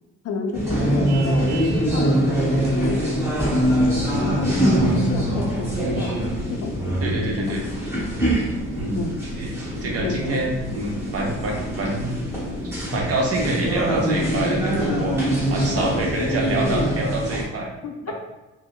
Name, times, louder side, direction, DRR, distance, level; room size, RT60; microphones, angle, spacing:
voice 1, 0.2-1.5 1.9-6.1 6.5-6.8 7.1-7.7 8.9-9.2 10.0-10.4 15.2-17.0 17.8-18.1, left 4 dB, 55° left, 4 dB, 0.5 m, -32 dB
sound 1, 0.5-17.4, right 1 dB, 10° right, 1.2 m, -24 dB
Vehicle horn car horn honking, 1.1-1.9, right 6 dB, 85° right, 0.6 m, -38 dB
sound 2, 3.3-16.8, left 1 dB, 25° left, 0.8 m, -32 dB
voice 2, 7.0-7.6 8.7-9.0 9.4-9.5 9.8-12.1 12.9-15.2 15.5-17.7, right 2 dB, 50° right, -1 dB, 0.8 m, -26 dB
4.3 x 2.0 x 2.2 m, 1.0 s
cardioid pair, 90°, 30 cm